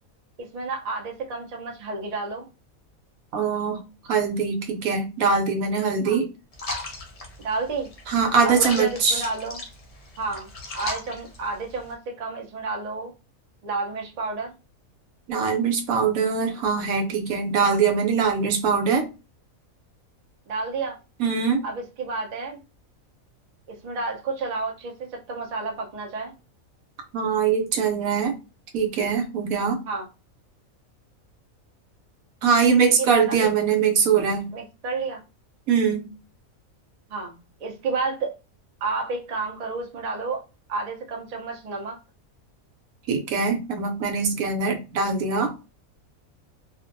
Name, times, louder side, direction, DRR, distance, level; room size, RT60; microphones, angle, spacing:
voice 1, 0.4-2.5 6.0-6.2 7.4-7.9 8.4-9.6 10.2-10.5 10.7-13.1 13.6-14.5 17.6-17.8 20.5-21.0 21.6-22.6 23.7-26.3 29.9-30.0 33.0-33.4 34.5-35.2 37.1-38.3 38.8-40.4 40.7-42.0, right 3 dB, 45° right, 0.5 m, -31 dB
voice 2, 3.3-3.8 4.1-6.3 8.1-9.2 15.3-19.1 21.2-21.6 27.1-28.4 28.7-29.8 32.4-34.5 35.7-36.1 43.1-45.5, right 5 dB, 85° right, 1.1 m, -22 dB
sound 1, 6.5-11.9, left 2 dB, 50° left, 0.4 m, -37 dB
2.5 x 2.2 x 2.5 m
omnidirectional pair, 1.5 m